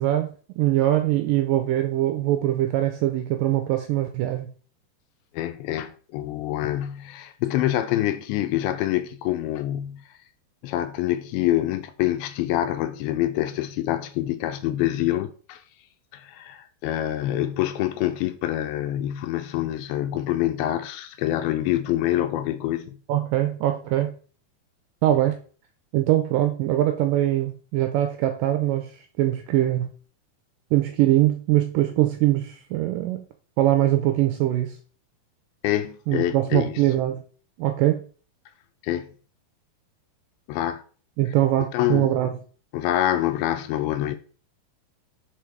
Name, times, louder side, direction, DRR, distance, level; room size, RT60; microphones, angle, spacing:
voice 1, 0.0-4.5 23.1-24.1 25.0-25.4 25.9-28.9 29.2-29.9 30.7-33.2 33.6-34.8 36.1-37.2 37.6-38.0 41.2-42.4, right 14 dB, 85° right, 2.0 m, -22 dB
voice 2, 5.3-10.0 10.6-15.6 16.1-23.0 35.6-36.8 38.8-39.1 40.5-40.8 41.6-42.2 42.7-44.2, left 13 dB, 80° left, 2.4 m, -26 dB
5.2 x 5.0 x 4.5 m
omnidirectional pair, 4.4 m